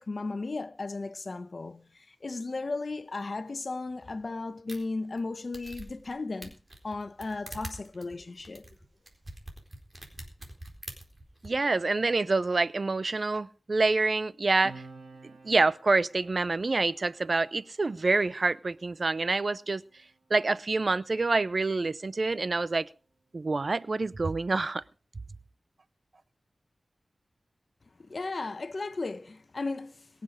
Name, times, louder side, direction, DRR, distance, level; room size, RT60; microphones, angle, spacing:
voice 1, 0.0-6.5 6.8-8.7 28.0-30.2, left 3 dB, 60° left, 1.1 m, -35 dB
sound 1, 4.7-4.8 5.2-5.3 5.5-6.1 6.4-11.5, right 1 dB, 35° right, 4.2 m, -44 dB
voice 2, 11.4-14.7 15.4-19.8 20.3-22.9 23.3-24.8, right 3 dB, 55° right, 0.5 m, -27 dB
Piano, 14.6-21.7 22.0-22.2, right 3 dB, 80° right, 3.1 m, -54 dB
22.5 x 7.6 x 5.0 m
wide cardioid pair, 55°, 0 cm